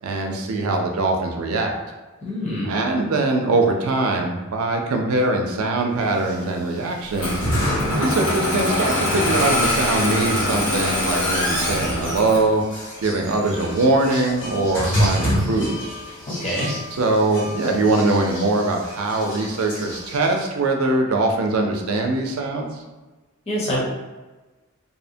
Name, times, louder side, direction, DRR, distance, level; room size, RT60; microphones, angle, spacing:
voice 1, 0.0-1.7 2.7-7.4 7.9-12.6 13.0-15.8 16.9-22.7, right 2 dB, 80° right, 2 dB, 0.4 m, -22 dB
voice 2, 2.2-2.7 16.3-16.7 23.5-23.8, equal, 30° left, -5 dB, 0.7 m, -25 dB
sound 1, 6.1-20.4, equal, 60° left, 1.3 m, -29 dB
Engine starting, 7.1-12.5, left 1 dB, 80° left, 1.0 m, -23 dB
2.7 x 2.1 x 2.6 m, 1.2 s
head